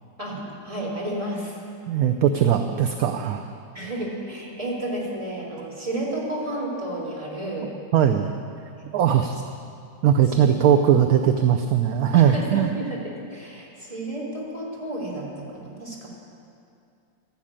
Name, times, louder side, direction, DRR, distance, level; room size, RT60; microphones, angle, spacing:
voice 1, 0.2-1.6 3.7-7.7 8.8-9.2 10.4-10.6 10.8-10.9 12.1-16.1, right 1 dB, 20° right, -4 dB, 3.4 m, -32 dB
voice 2, 1.9-3.5 7.9-8.3 8.9-9.4 10.0-12.7, right 9 dB, 65° right, 6 dB, 1.0 m, -19 dB
13.0 x 11.5 x 8.8 m, 2.5 s
omnidirectional pair, 1.9 m